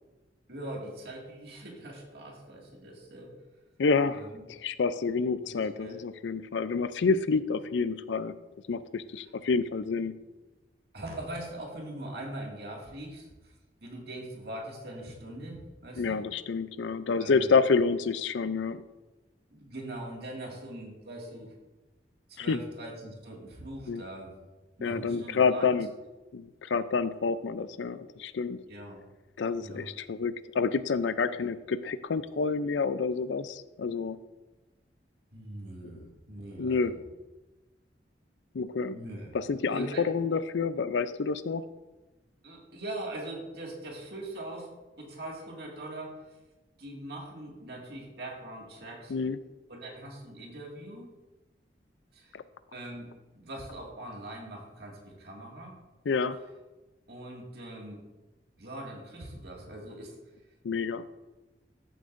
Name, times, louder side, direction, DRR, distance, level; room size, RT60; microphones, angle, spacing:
voice 1, 0.5-3.3 4.1-4.4 5.5-6.0 9.2-9.3 10.9-13.5 13.8-16.2 17.2-17.5 19.5-21.6 22.3-24.3 24.8-25.7 28.7-29.0 29.6-29.9 35.3-37.0 38.9-39.3 39.7-40.1 42.4-46.2 46.8-49.1 49.7-51.1 52.1-52.4 52.7-55.8 57.1-58.1 58.6-60.2, right 1 dB, 60° right, -1 dB, 2.1 m, -41 dB
voice 2, 3.8-8.4 8.7-10.1 16.0-18.8 22.4-22.6 23.9-24.0 24.8-25.9 26.3-28.6 29.4-34.2 36.6-36.9 38.5-39.0 39.3-41.6 49.1-49.4 52.3-52.4 56.1-56.4 60.6-61.1, left 4 dB, 80° left, 14 dB, 0.5 m, -28 dB
13.5 x 7.8 x 2.6 m, 1.1 s
head